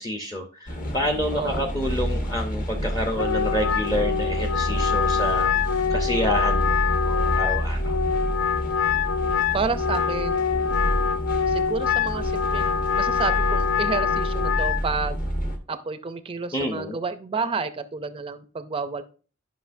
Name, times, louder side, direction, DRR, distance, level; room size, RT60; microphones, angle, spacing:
voice 1, 0.0-8.0 16.5-17.0, equal, 20° left, 4 dB, 0.6 m, -28 dB
sound 1, 0.7-15.6, equal, 40° left, 1.0 m, -28 dB
voice 2, 1.3-1.7 9.5-10.4 11.5-15.2 15.7-19.0, right 4 dB, 25° right, 11 dB, 0.4 m, -30 dB
Wind instrument woodwind instrument, 3.1-14.8, left 7 dB, 70° left, 0.3 m, -25 dB
10.0 x 5.6 x 2.6 m, 0.37 s
head